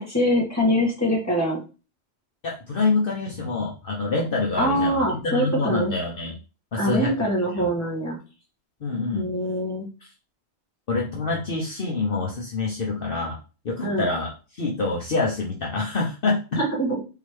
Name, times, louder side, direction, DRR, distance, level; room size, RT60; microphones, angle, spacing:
voice 1, 0.0-1.6 4.6-5.9 6.8-8.2 9.1-9.9 13.8-14.1 16.6-17.0, equal, 15° left, -4 dB, 1.8 m, -23 dB
voice 2, 2.4-6.4 6.7-7.1 7.6-7.7 8.8-9.2 10.0-10.1 10.9-13.4 13.6-16.6, left 3 dB, 55° left, -2 dB, 1.0 m, -26 dB
4.2 x 3.8 x 3.2 m, 0.33 s
omnidirectional pair, 1.2 m